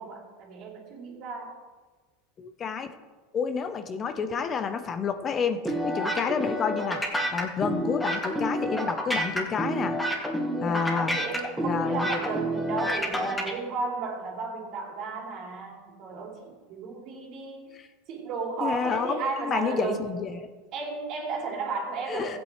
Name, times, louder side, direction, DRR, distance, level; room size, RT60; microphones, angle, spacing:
voice 1, 0.0-1.6 10.4-17.7 18.1-20.1 20.7-22.4, right 4 dB, 55° right, -1 dB, 2.8 m, -34 dB
voice 2, 2.4-2.9 3.3-7.0 7.3-10.0 10.6-11.2 11.6-12.2 18.6-20.5 22.1-22.4, left 6 dB, 35° left, 9 dB, 0.8 m, -29 dB
sound 1, 5.6-13.5, equal, 10° left, 2.2 m, -29 dB
15.5 x 8.7 x 3.2 m, 1.3 s
supercardioid pair, 105°, 0 cm